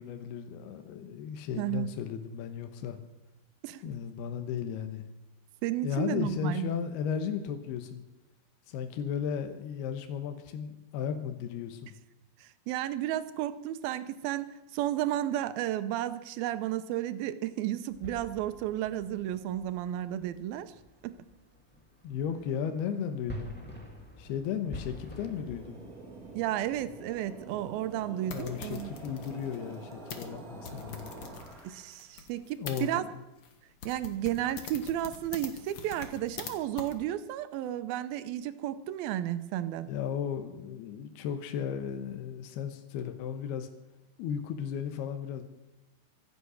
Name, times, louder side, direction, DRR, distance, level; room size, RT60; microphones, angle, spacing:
voice 1, 0.0-3.0 3.8-5.0 5.8-8.0 8.7-12.0 22.0-23.6 24.2-25.8 28.3-31.1 32.6-33.1 39.9-43.7 44.2-45.4, left 8 dB, 80° left, 7 dB, 3.0 m, -35 dB
voice 2, 1.5-1.9 3.6-3.8 5.6-6.7 12.4-20.7 21.0-21.2 26.4-28.9 31.6-33.0 33.9-39.9, right 12 dB, 75° right, 13 dB, 2.4 m, -33 dB
sound 1, 17.9-28.1, left 1 dB, 5° left, 1.4 m, -48 dB
sound 2, 24.8-32.2, right 3 dB, 30° right, 1.8 m, -47 dB
sound 3, 28.3-32.8 33.4-33.5 33.8-36.5 36.8-36.9, left 6 dB, 60° left, 1.4 m, -44 dB
24.5 x 8.3 x 6.3 m, 0.98 s
omnidirectional pair, 4.6 m